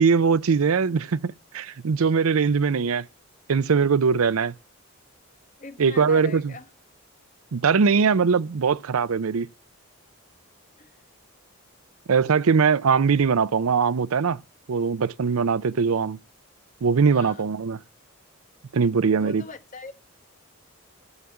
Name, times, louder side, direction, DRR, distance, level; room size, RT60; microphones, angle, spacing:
voice 1, 0.0-3.1 3.5-4.5 5.8-6.5 7.5-9.5 12.1-14.4 14.7-16.2 16.8-17.8 18.7-19.4, right 5 dB, 80° right, 0.5 m, -21 dB
voice 2, 5.6-6.7 10.8-11.0 17.1-17.5 19.2-19.9, left 3 dB, 35° left, 1.1 m, -41 dB
9.6 x 7.1 x 7.6 m
head